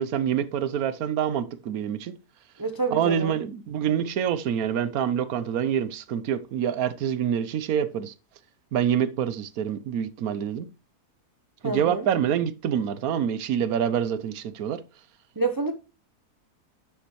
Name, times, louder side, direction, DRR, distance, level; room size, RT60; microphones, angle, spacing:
voice 1, 0.0-2.1 2.9-8.1 8.7-10.7 11.6-14.8, right 9 dB, 70° right, 1.2 m, -26 dB
voice 2, 2.6-3.3 11.6-12.1 15.4-15.7, right 3 dB, 30° right, 0.3 m, -28 dB
9.9 x 6.9 x 3.1 m
omnidirectional pair, 1.6 m